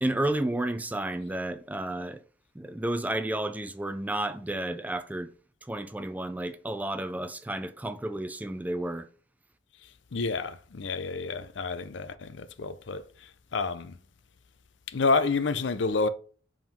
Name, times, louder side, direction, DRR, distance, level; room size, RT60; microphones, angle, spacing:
voice 1, 0.0-2.2 2.5-5.3 5.6-9.1, right 1 dB, 10° right, 0.4 m, -31 dB
voice 2, 10.1-13.0 13.5-13.9 14.9-16.1, left 4 dB, 70° left, 0.6 m, -28 dB
4.9 x 3.8 x 5.3 m
head